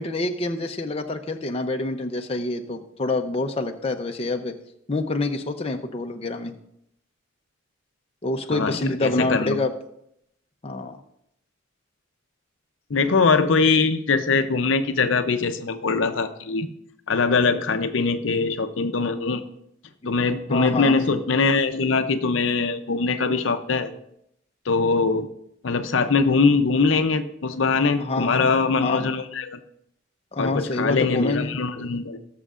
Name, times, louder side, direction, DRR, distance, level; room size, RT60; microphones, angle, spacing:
voice 1, 0.0-4.5 4.9-6.5 8.2-9.7 10.6-11.0 20.0-20.1 20.5-20.9 28.0-28.5 28.8-29.1 30.3-31.6, left 2 dB, 30° left, 4 dB, 0.6 m, -27 dB
voice 2, 8.5-9.6 12.9-16.7 17.1-19.4 20.1-23.9 24.7-25.3 25.6-29.6 30.4-32.2, left 4 dB, 65° left, 9 dB, 0.6 m, -22 dB
19.0 x 6.6 x 2.5 m, 0.76 s
head